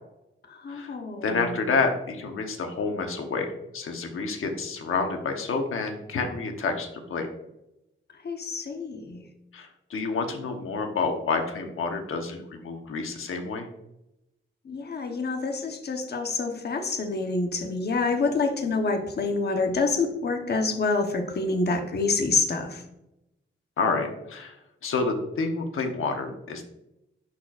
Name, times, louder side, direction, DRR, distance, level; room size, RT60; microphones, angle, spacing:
voice 1, 0.5-1.6 8.2-9.2 14.6-22.8, left 3 dB, 50° left, 4 dB, 1.0 m, -27 dB
voice 2, 1.2-7.3 9.5-13.7 23.8-24.6 24.8-26.6, left 4 dB, 80° left, 4 dB, 1.1 m, -29 dB
10.5 x 4.4 x 2.5 m, 0.88 s
wide cardioid pair, 115°, 21 cm